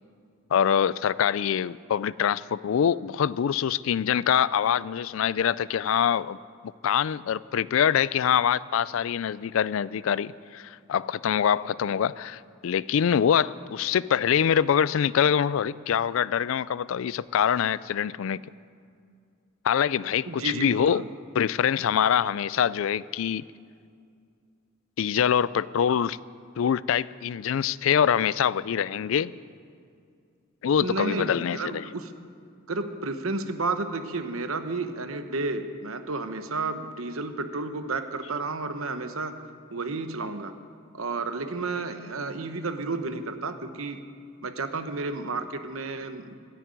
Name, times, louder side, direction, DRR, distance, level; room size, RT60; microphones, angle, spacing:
voice 1, 0.5-6.4 6.8-18.4 19.6-21.0 21.4-23.4 25.0-26.2 26.6-29.3 30.6-31.8, left 8 dB, 70° left, 19 dB, 0.3 m, -24 dB
voice 2, 20.3-21.1 30.8-32.1 32.7-39.4 39.7-40.5 40.9-44.0 44.4-46.3, right 3 dB, 75° right, 8 dB, 1.1 m, -32 dB
14.0 x 9.1 x 9.7 m, 2.3 s
head